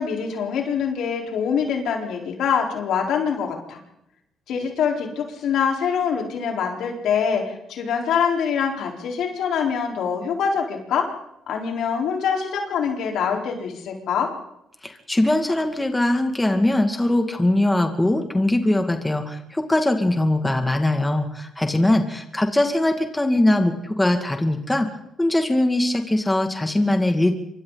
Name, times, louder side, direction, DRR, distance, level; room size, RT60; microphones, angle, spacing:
voice 1, 0.0-3.8 4.5-11.1 11.5-14.3, left 7 dB, 80° left, 1 dB, 4.4 m, -24 dB
voice 2, 14.8-24.9 25.2-27.3, left 1 dB, 10° left, 5 dB, 2.3 m, -21 dB
27.0 x 24.0 x 4.1 m, 0.80 s
cardioid pair, 90°, 0 cm